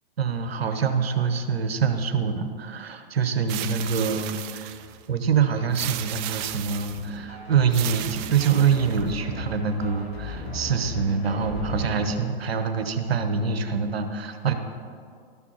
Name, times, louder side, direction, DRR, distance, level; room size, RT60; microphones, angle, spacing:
voice 1, 0.2-4.7 5.1-14.5, right 6 dB, 75° right, 7 dB, 1.0 m, -25 dB
sound 1, 3.5-5.0 5.7-7.1 7.7-9.1, right 13 dB, 25° right, 0.4 m, -34 dB
sound 2, 4.7-5.0 5.2-12.0, equal, 80° left, 2.5 m, -38 dB
12.5 x 6.1 x 5.6 m, 2.3 s
hypercardioid pair, 115°, 31 cm